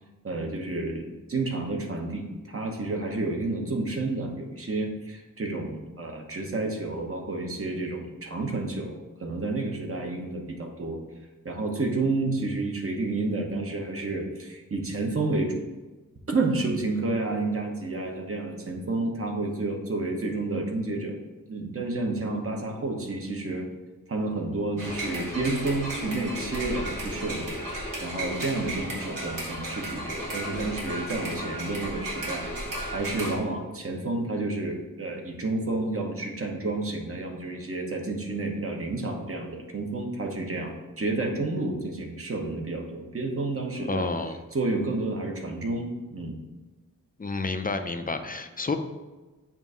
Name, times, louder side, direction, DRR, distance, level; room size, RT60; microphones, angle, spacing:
voice 1, 0.2-11.0 11.4-15.6 16.3-21.2 21.5-23.7 24.1-27.5 28.0-32.5 32.9-44.1 44.5-46.4, right 2 dB, 40° right, 1 dB, 1.0 m, -30 dB
sound 1, 24.8-33.4, right 1 dB, 75° right, 1.6 m, -34 dB
voice 2, 43.7-44.4 47.2-48.8, left 3 dB, 25° left, 7 dB, 0.4 m, -30 dB
7.1 x 2.7 x 5.5 m, 1.2 s
wide cardioid pair, 95°, 33 cm